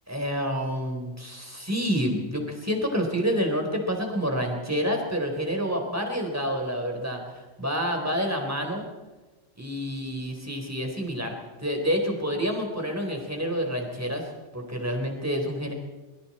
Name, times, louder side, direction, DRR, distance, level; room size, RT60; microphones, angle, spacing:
voice 1, 0.1-8.8 9.6-14.2 14.5-15.7, equal, 10° right, 2 dB, 3.9 m, -28 dB
26.0 x 23.0 x 4.4 m, 1.2 s
omnidirectional pair, 1.2 m